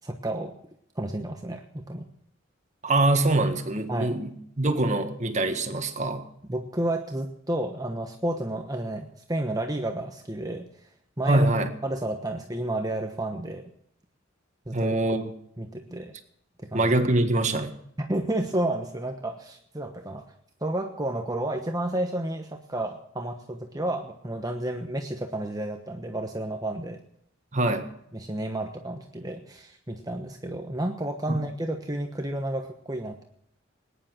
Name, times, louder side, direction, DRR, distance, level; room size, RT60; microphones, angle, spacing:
voice 1, 0.0-0.5 0.9-2.0 3.9-4.2 6.5-10.7 11.2-11.5 11.8-13.7 14.7-14.9 15.6-16.1 16.6-16.8 18.0-20.2 20.6-27.0 28.1-33.2, right 1 dB, 20° right, 4 dB, 1.1 m, -31 dB
voice 2, 2.8-6.3 11.3-11.7 14.7-15.3 16.7-17.7 27.5-27.8 31.3-31.4, right 2 dB, 35° right, 7 dB, 1.7 m, -24 dB
20.0 x 10.5 x 6.0 m, 0.72 s
head